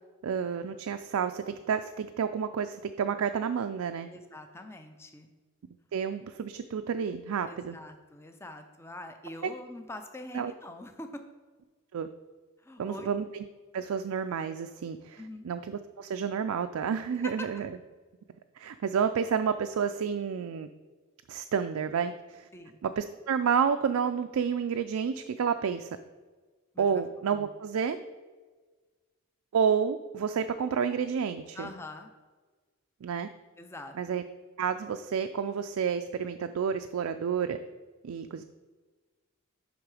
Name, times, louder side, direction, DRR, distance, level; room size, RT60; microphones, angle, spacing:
voice 1, 0.2-4.1 5.9-7.8 9.4-9.5 10.3-10.5 11.9-12.1 12.8-13.3 13.7-17.7 18.6-20.7 21.3-22.5 22.8-25.9 26.8-28.0 29.5-31.7 33.0-33.3 34.0-34.2 34.6-37.6 38.0-38.4, right 7 dB, 75° right, 8 dB, 0.4 m, -30 dB
voice 2, 4.1-5.3 7.4-11.2 12.6-13.1 15.2-15.5 17.2-17.5 22.5-22.8 26.7-27.0 31.5-32.1 33.6-34.2, left 1 dB, 10° left, 6 dB, 0.5 m, -44 dB
11.0 x 3.7 x 4.8 m, 1.4 s
head